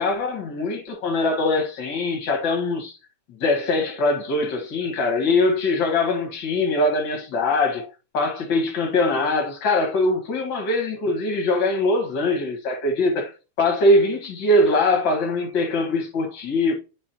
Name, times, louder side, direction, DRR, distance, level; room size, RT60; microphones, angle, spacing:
voice 1, 0.0-3.0 3.4-7.9 8.1-13.3 13.6-16.7, left 2 dB, 45° left, 1.9 m, -22 dB
8.6 x 5.1 x 2.9 m
omnidirectional pair, 3.6 m